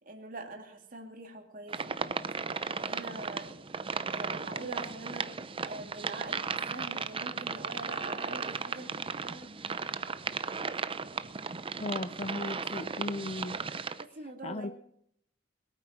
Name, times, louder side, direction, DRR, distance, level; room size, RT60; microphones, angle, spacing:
voice 1, 0.0-1.9 2.6-5.3 5.6-9.5 13.9-14.7, right 2 dB, 45° right, 3 dB, 2.5 m, -44 dB
sound 1, 1.7-14.0, right 5 dB, 30° right, 0.6 m, -36 dB
voice 2, 11.8-13.6 14.4-14.7, left 2 dB, 35° left, 11 dB, 0.5 m, -36 dB
22.0 x 9.1 x 6.0 m, 0.70 s
head